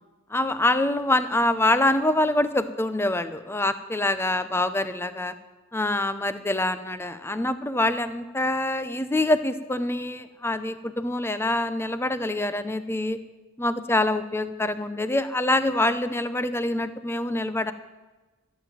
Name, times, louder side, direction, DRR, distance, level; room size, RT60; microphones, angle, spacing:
voice 1, 0.3-5.3 5.7-13.2 13.6-17.7, left 1 dB, 10° left, 11 dB, 0.7 m, -25 dB
14.5 x 8.0 x 9.2 m, 1.2 s
head